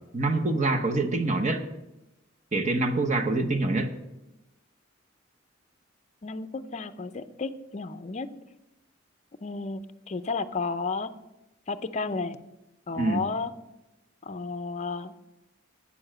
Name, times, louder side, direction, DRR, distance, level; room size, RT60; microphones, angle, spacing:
voice 1, 0.1-1.6 2.5-3.9 12.9-13.2, right 2 dB, 40° right, 5 dB, 0.9 m, -25 dB
voice 2, 6.2-8.3 9.4-9.8 10.1-11.1 11.7-12.4 12.9-13.5 14.2-15.1, left 4 dB, 35° left, 11 dB, 0.5 m, -32 dB
8.6 x 7.0 x 7.5 m, 0.96 s
head